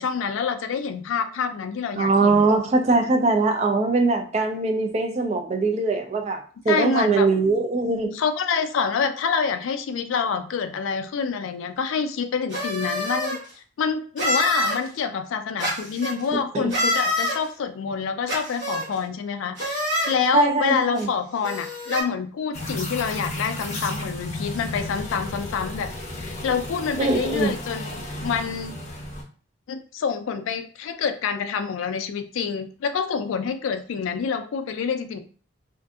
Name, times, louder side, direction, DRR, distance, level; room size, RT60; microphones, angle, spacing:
voice 1, 0.0-2.4 6.7-7.3 8.1-13.4 13.8-25.9 26.2-28.7 29.7-35.2, left 6 dB, 75° left, 8 dB, 0.3 m, -27 dB
voice 2, 2.0-6.4 6.6-8.2 16.3-16.7 20.3-21.1 27.0-27.5, right 3 dB, 30° right, 5 dB, 0.3 m, -21 dB
sound 1, 12.5-13.4 14.2-14.8 15.6-16.1 16.7-17.4 18.3-18.9 19.6-20.1 21.0-21.1 21.4-22.0, left 1 dB, 60° right, 1.1 m, -26 dB
sound 2, 22.5-29.2, left 1 dB, 35° left, 0.6 m, -33 dB
2.6 x 2.5 x 2.3 m, 0.41 s
head